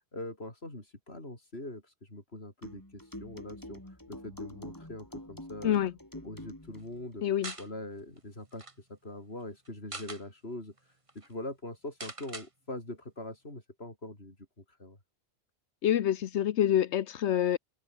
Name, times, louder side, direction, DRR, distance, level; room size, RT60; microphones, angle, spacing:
voice 1, 0.1-5.8 6.2-7.3 7.6-15.0, left 1 dB, 65° left, 6.3 m, -43 dB
sound 1, 2.6-6.9, left 1 dB, 15° left, 4.0 m, -46 dB
voice 2, 7.2-7.5 15.8-17.6, left 10 dB, 80° left, 1.0 m, -26 dB
sound 2, 7.4-7.7 8.2-8.3 8.5-8.7 9.6-10.2 10.8-10.9 11.1-11.3 12.0-12.5, right 2 dB, 30° right, 1.8 m, -42 dB
omnidirectional pair, 1.1 m